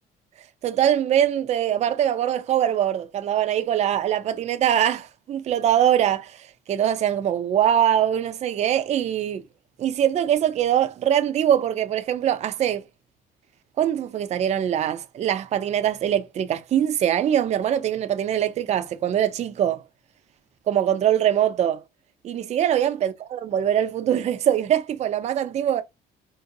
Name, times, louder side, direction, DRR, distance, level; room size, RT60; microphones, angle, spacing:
voice 1, 0.6-6.4 6.7-9.4 9.8-12.8 13.8-19.8 20.7-21.8 22.2-25.8, right 10 dB, 40° right, 0.4 m, -22 dB
3.8 x 2.6 x 2.6 m
cardioid pair, 110°, 17 cm